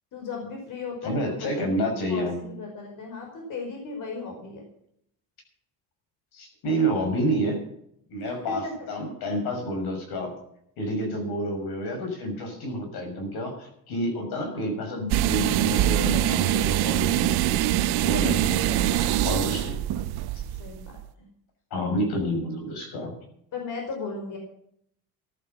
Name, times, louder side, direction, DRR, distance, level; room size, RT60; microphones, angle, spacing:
voice 1, 0.1-1.8 2.1-4.6 8.2-8.9 18.1-18.9 20.6-20.8 21.2-21.3 23.5-24.4, left 4 dB, 55° left, 1 dB, 5.2 m, -36 dB
voice 2, 1.0-2.4 6.3-7.6 8.1-10.4 10.8-17.6 18.0-19.8 20.3-20.4 21.7-23.1, equal, 75° left, 4 dB, 6.4 m, -29 dB
sound 1, 15.1-21.1, right 12 dB, 75° right, 0.8 m, -24 dB
15.0 x 11.5 x 5.9 m, 0.69 s
cardioid pair, 165°, 38 cm